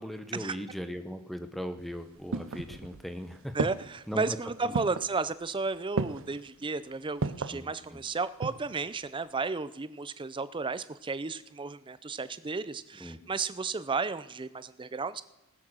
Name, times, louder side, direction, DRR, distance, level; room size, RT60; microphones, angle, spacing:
voice 1, 0.0-3.7 4.1-4.4 4.6-4.8 7.5-8.0 13.0-13.2, equal, ahead, 8 dB, 0.9 m, -38 dB
sound 1, 1.8-3.1 3.6-4.1 4.7-5.2 6.0-6.4 7.2-7.6 8.2-8.8 9.0-9.1, right 4 dB, 65° right, 0.6 m, -33 dB
voice 2, 3.5-15.2, right 4 dB, 20° right, 15 dB, 0.5 m, -33 dB
19.5 x 7.4 x 6.2 m, 0.96 s
head